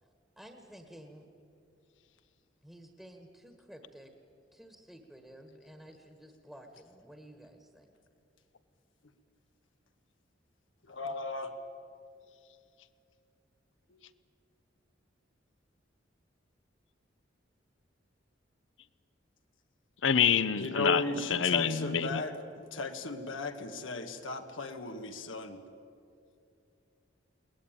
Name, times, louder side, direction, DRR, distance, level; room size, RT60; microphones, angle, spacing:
voice 1, 0.4-1.3 2.6-4.1 4.5-7.9, equal, ahead, 5 dB, 1.5 m, -52 dB
voice 2, 10.9-11.5 13.9-14.0 20.5-25.6, left 3 dB, 90° left, 6 dB, 1.6 m, -36 dB
voice 3, 20.0-22.2, left 7 dB, 75° left, 16 dB, 0.8 m, -27 dB
22.0 x 18.5 x 8.9 m, 2.5 s
head